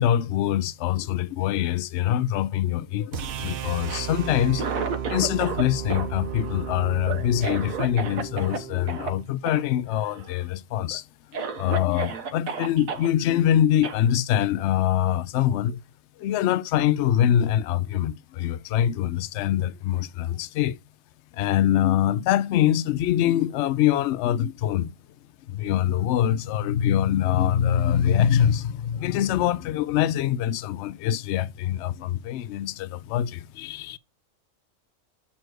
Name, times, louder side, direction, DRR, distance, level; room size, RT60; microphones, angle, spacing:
voice 1, 0.0-4.6 5.1-11.0 11.3-15.8 16.2-20.8 21.3-24.9 25.5-34.0, left 11 dB, 65° left, 0.8 m, -24 dB
sound 1, 3.1-9.3, right 9 dB, 55° right, 0.7 m, -34 dB
Cough, 3.7-5.6 5.9-8.6 8.9-9.1 9.5-9.6 9.9-10.4 10.9-11.0 11.3-13.1 13.8-14.0, right 5 dB, 85° right, 1.5 m, -32 dB
7.9 x 4.2 x 4.6 m
omnidirectional pair, 1.4 m